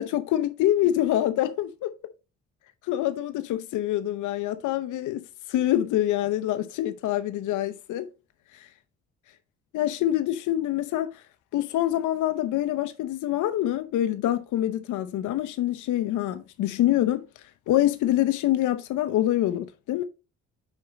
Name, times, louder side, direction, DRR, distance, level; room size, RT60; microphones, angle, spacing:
voice 1, 0.0-1.9 2.8-5.2 5.5-8.1 8.5-8.7 9.7-11.2 11.5-17.2 17.7-20.0, left 13 dB, 80° left, 0.7 m, -25 dB
6.5 x 5.0 x 4.1 m
cardioid pair, 90°, 30 cm